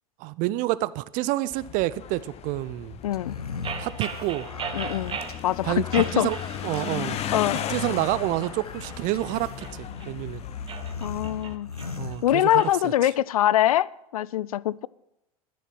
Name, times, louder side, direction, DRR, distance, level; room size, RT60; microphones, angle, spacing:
voice 1, 0.2-3.0 3.8-4.5 5.6-6.4 6.6-7.2 7.7-10.4 11.9-12.9, right 17 dB, 45° right, 0.5 m, -28 dB
sound 1, 1.5-11.6, left 10 dB, 35° left, 0.8 m, -37 dB
voice 2, 3.0-3.3 4.7-5.2 5.4-6.3 7.3-7.6 11.0-11.7 12.2-14.9, left 12 dB, 70° left, 0.4 m, -23 dB
sound 2, 3.1-12.8, left 5 dB, 85° left, 0.9 m, -39 dB
sound 3, 3.6-5.4 5.9-6.9 7.2-7.7 8.2-10.1 10.6-12.7, right 6 dB, 30° right, 1.5 m, -37 dB
11.0 x 10.5 x 6.0 m
figure-of-eight pair, 80°, 19 cm